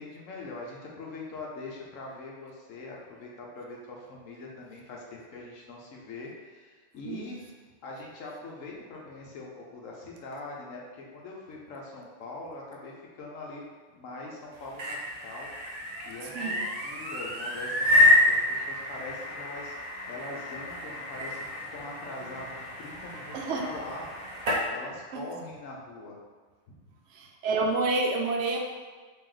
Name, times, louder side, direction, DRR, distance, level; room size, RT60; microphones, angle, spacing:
voice 1, 0.0-7.4 7.8-13.6 13.9-15.0 15.2-15.5 16.0-19.7 20.1-24.1 24.7-26.2 26.7-26.8, left 2 dB, 90° left, -2 dB, 1.1 m, -42 dB
sound 1, 14.5-24.7, left 1 dB, 45° right, 0.5 m, -28 dB
voice 2, 16.3-16.7 23.3-23.7 25.1-25.2 27.1-28.6, right 3 dB, 70° right, 1 dB, 0.9 m, -29 dB
3.1 x 3.0 x 3.8 m, 1.5 s
omnidirectional pair, 1.3 m